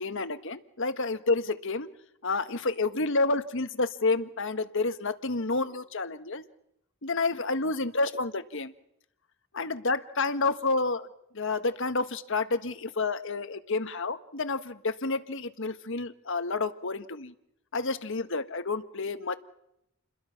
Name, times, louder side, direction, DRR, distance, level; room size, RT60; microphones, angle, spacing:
voice 1, 0.0-1.9 2.2-6.4 7.0-8.7 9.5-11.1 11.3-17.3 17.7-19.4, left 3 dB, 60° left, 10 dB, 1.4 m, -29 dB
29.5 x 21.5 x 5.9 m, 0.80 s
head